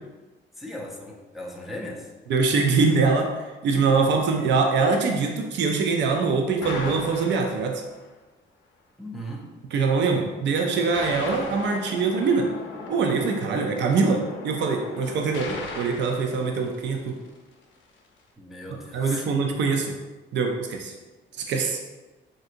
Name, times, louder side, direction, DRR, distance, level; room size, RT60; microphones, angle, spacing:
voice 1, 0.6-2.1 9.0-9.5 18.4-19.3, equal, ahead, -3 dB, 0.5 m, -37 dB
voice 2, 2.3-3.3 3.6-7.8 9.7-12.5 12.9-17.2 18.9-19.9 20.3-20.9 21.5-21.8, right 4 dB, 65° right, 3 dB, 0.5 m, -23 dB
sound 1, 6.6-8.0 10.7-17.3, left 3 dB, 75° left, 0.7 m, -38 dB
3.7 x 2.7 x 2.6 m, 1.2 s
cardioid pair, 90°, 20 cm